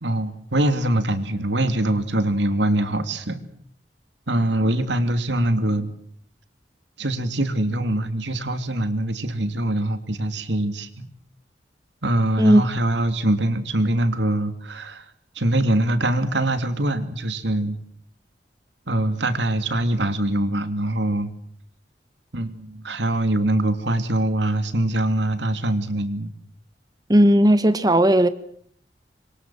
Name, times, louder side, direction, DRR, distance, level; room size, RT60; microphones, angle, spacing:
voice 1, 0.0-3.4 4.3-5.9 7.0-11.1 12.0-15.1 15.3-17.7 18.9-21.3 22.3-26.3, right 1 dB, 90° right, 2.8 m, -23 dB
voice 2, 27.1-28.3, right 1 dB, 20° right, 1.1 m, -15 dB
26.5 x 23.5 x 7.7 m
head